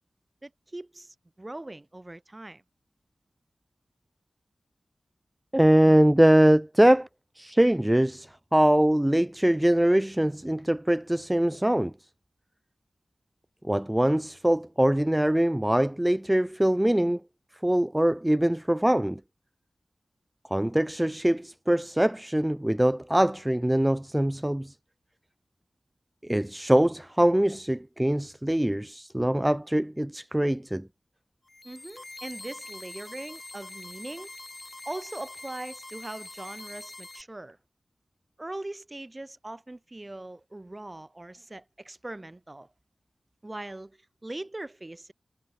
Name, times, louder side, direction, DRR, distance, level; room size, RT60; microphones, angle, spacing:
voice 1, 0.4-2.6 31.6-34.3 34.8-37.6 38.4-42.7 43.4-45.1, right 2 dB, 25° right, 1.3 m, -40 dB
voice 2, 5.5-7.1 7.4-11.9 13.6-17.2 17.6-19.2 20.5-24.7 26.2-30.9, right 1 dB, 10° right, 0.4 m, -23 dB
sound 1, 31.5-37.2, left 2 dB, 35° left, 2.5 m, -44 dB
wide cardioid pair, 60°, 0 cm